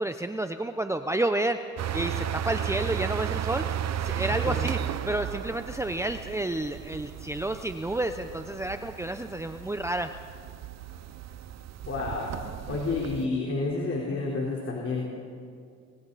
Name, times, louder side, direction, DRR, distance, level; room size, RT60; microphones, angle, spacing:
voice 1, 0.0-1.6 1.9-3.6 4.0-10.1, right 1 dB, 10° right, 8 dB, 0.7 m, -30 dB
sound 1, 1.8-13.2, right 10 dB, 60° right, 0.9 m, -34 dB
voice 2, 11.9-12.3 12.7-15.1, left 3 dB, 45° left, -3 dB, 4.2 m, -29 dB
29.5 x 25.0 x 4.2 m, 2.2 s
cardioid pair, 90°, 30 cm